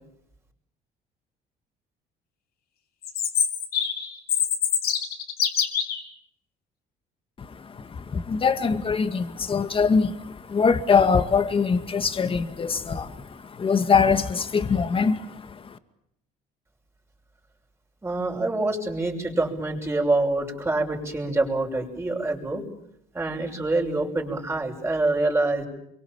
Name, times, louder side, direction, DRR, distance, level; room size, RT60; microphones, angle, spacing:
Chirp tweet, 3.0-6.0, left 8 dB, 65° left, 3.6 m, -25 dB
voice 1, 7.4-15.8, left 5 dB, 30° left, 2.2 m, -23 dB
voice 2, 18.0-22.6 23.1-25.7, right 2 dB, 15° right, 6.4 m, -26 dB
29.0 x 24.0 x 7.4 m
cardioid pair, 110°, 17 cm